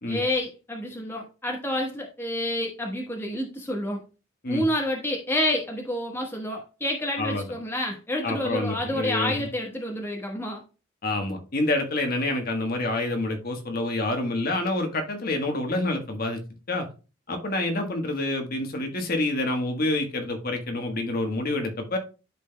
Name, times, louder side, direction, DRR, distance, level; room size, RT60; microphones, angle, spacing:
voice 1, 0.1-4.0 4.5-10.6, left 1 dB, 10° left, 0 dB, 1.2 m, -29 dB
voice 2, 8.2-9.3 11.0-16.4 16.7-16.9 17.3-22.0, left 2 dB, 50° left, 4 dB, 1.3 m, -27 dB
12.0 x 4.1 x 2.2 m, 0.33 s
head